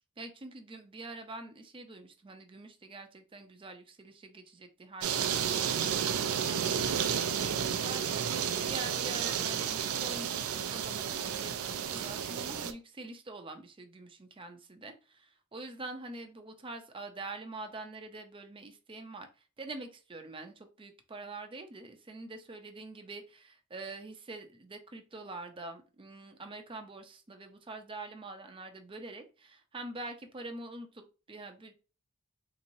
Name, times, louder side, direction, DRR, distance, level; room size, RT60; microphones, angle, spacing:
voice 1, 0.2-19.3 19.6-31.7, right 2 dB, 25° right, 6 dB, 0.5 m, -45 dB
sound 1, 5.0-12.7, right 8 dB, 90° right, 0.4 m, -32 dB
3.8 x 3.0 x 2.6 m, 0.34 s
head